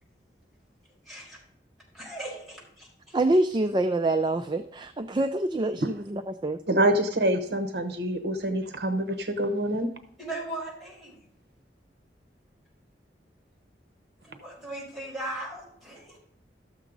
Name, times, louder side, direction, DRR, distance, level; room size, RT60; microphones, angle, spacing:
voice 1, 1.0-1.4 1.9-3.2 10.2-11.3 14.2-16.2, right 1 dB, ahead, -6 dB, 5.0 m, -38 dB
voice 2, 3.1-6.6, right 2 dB, 25° right, 8 dB, 0.4 m, -26 dB
voice 3, 6.7-9.9, right 1 dB, 65° right, 7 dB, 0.9 m, -26 dB
13.0 x 7.3 x 4.0 m, 0.70 s
head